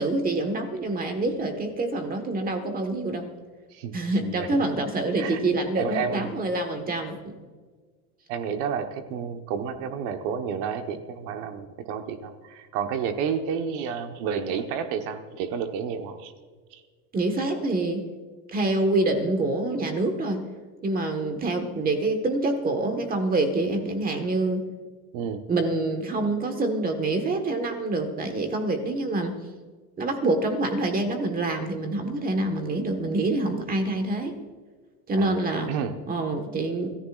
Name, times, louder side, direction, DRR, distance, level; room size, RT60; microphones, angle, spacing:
voice 1, 0.0-3.3 3.9-7.4 17.1-18.0 18.5-20.4 20.8-24.6 25.5-29.3 30.0-34.4 35.1-35.7 36.1-36.9, right 2 dB, 20° right, 5 dB, 1.4 m, -26 dB
voice 2, 5.8-6.3 8.3-16.3 16.7-16.8 25.1-25.4 35.2-35.4 35.7-35.9, right 7 dB, 55° right, 6 dB, 1.3 m, -30 dB
25.5 x 14.5 x 2.5 m, 1.5 s
supercardioid pair, 150°, 48 cm